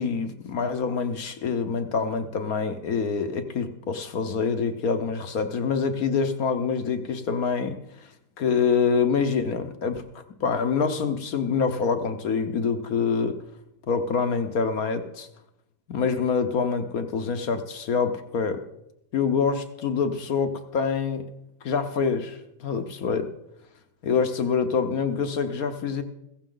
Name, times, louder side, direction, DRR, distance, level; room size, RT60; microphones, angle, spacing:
voice 1, 0.0-8.1 8.4-10.0 10.4-13.4 13.9-15.3 15.9-18.6 19.1-21.3 21.6-23.3 24.0-26.0, left 5 dB, 60° left, 8 dB, 1.3 m, -26 dB
15.5 x 15.0 x 3.9 m, 0.84 s
omnidirectional pair, 1.9 m